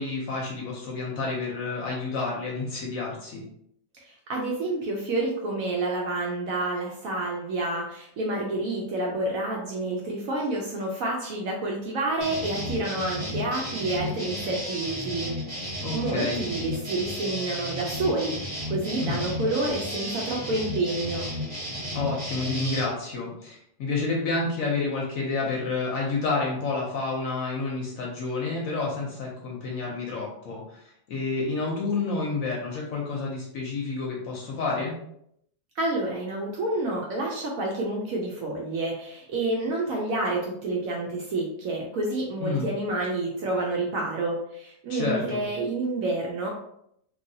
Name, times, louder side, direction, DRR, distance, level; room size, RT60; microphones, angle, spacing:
voice 1, 0.0-3.4 15.8-16.4 19.0-19.2 21.9-34.9 42.4-42.7 44.9-45.4, left 3 dB, 65° left, -2 dB, 0.9 m, -29 dB
voice 2, 4.0-21.3 35.8-46.5, right 2 dB, 70° right, -1 dB, 0.8 m, -29 dB
sound 1, 12.2-22.9, left 1 dB, 30° right, 1.0 m, -33 dB
3.1 x 2.6 x 2.7 m, 0.73 s
omnidirectional pair, 1.8 m